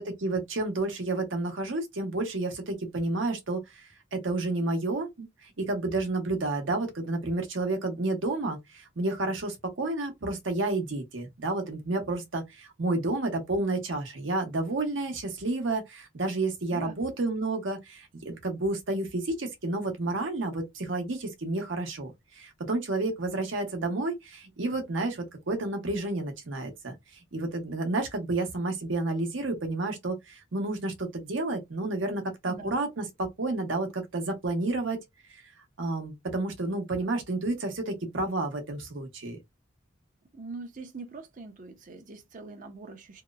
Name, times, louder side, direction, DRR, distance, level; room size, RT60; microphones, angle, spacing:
voice 1, 0.2-26.9 27.3-35.0 35.8-39.4, right 2 dB, 70° right, 0.8 m, -30 dB
voice 2, 32.5-32.8 40.3-43.2, right 3 dB, 40° right, 0.5 m, -42 dB
2.8 x 2.0 x 2.3 m
head